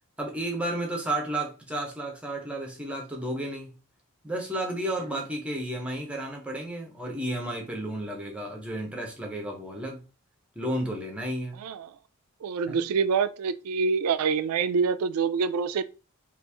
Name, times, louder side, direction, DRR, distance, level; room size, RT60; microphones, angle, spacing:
voice 1, 0.2-3.8 4.2-10.0 10.6-11.6 12.7-12.8, right 1 dB, 5° right, 0.6 m, -32 dB
voice 2, 11.6-11.9 12.4-15.8, right 5 dB, 80° right, 0.3 m, -26 dB
3.0 x 2.4 x 3.3 m
head